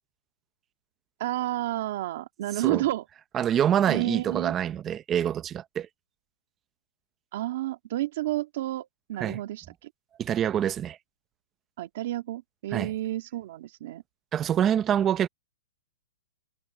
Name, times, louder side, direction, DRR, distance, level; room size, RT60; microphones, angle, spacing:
voice 1, 1.2-3.1 3.9-4.5 7.3-9.9 11.8-14.0, right 15 dB, 40° right, 2.1 m, -31 dB
voice 2, 3.3-5.9 9.2-9.4 10.2-11.0 12.7-12.9 14.3-15.3, right 9 dB, 15° right, 0.6 m, -25 dB
hypercardioid pair, 170°, 0 cm